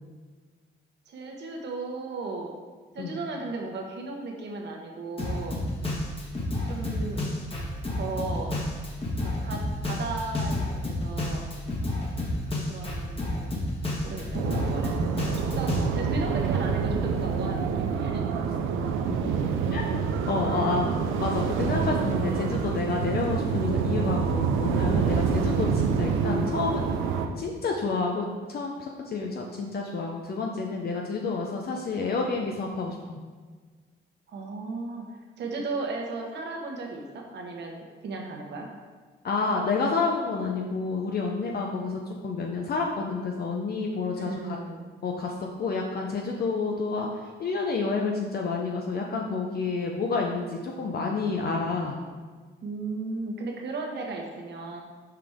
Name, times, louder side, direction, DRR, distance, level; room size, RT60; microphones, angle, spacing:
voice 1, 1.1-2.5 2.9-5.6 6.6-7.3 7.9-8.5 9.4-11.4 12.7-13.6 14.0-18.7 20.5-20.9 34.3-38.7 44.2-44.9 52.6-54.8, right 3 dB, 60° right, 1 dB, 1.2 m, -36 dB
Drum kit, 5.2-15.8, left 1 dB, 30° left, 1.4 m, -30 dB
sound 1, 8.8-18.6, left 2 dB, 10° left, 1.0 m, -47 dB
sound 2, 14.3-27.3, right 6 dB, 85° right, 0.5 m, -27 dB
voice 2, 20.3-20.9 21.2-33.2 39.2-44.6 45.0-45.3 45.6-52.0, left 4 dB, 50° left, 0 dB, 0.7 m, -29 dB
5.8 x 5.0 x 3.6 m, 1.4 s
cardioid pair, 90°, 20 cm